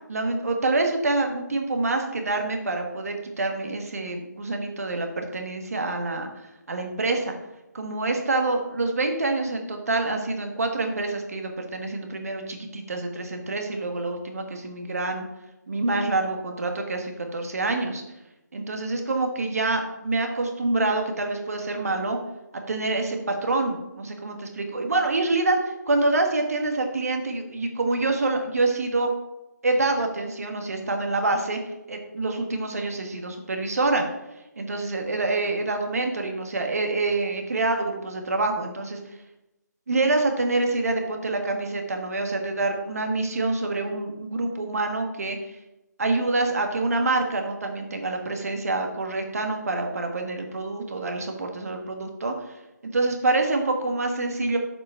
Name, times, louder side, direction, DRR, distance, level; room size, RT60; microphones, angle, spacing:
voice 1, 0.1-7.4 7.7-15.2 15.7-18.0 18.5-22.2 22.7-25.6 25.9-29.1 29.6-31.6 31.9-34.0 34.6-39.2 39.9-45.5 46.0-54.6, right 2 dB, 55° right, 4 dB, 1.6 m, -26 dB
7.3 x 5.4 x 5.5 m, 0.96 s
figure-of-eight pair, 150°, 10 cm